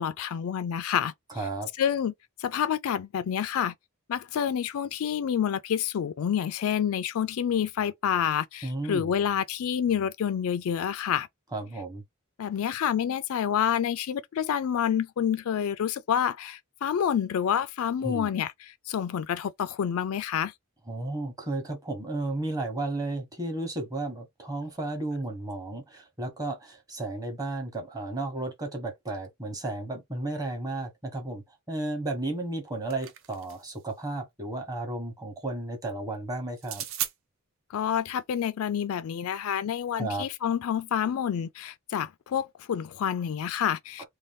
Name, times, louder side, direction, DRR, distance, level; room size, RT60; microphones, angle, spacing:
voice 1, 0.0-1.1 1.8-2.1 2.4-3.7 4.1-11.3 12.4-20.5 37.7-44.0, left 8 dB, 75° left, 0.3 m, -28 dB
voice 2, 1.3-1.7 8.6-9.1 11.5-12.0 18.0-18.4 20.9-36.8 40.0-40.3 44.0-44.1, right 2 dB, 15° right, 0.9 m, -33 dB
sound 1, 32.5-33.8 36.6-37.1, right 10 dB, 60° right, 0.5 m, -36 dB
2.6 x 2.3 x 3.4 m
head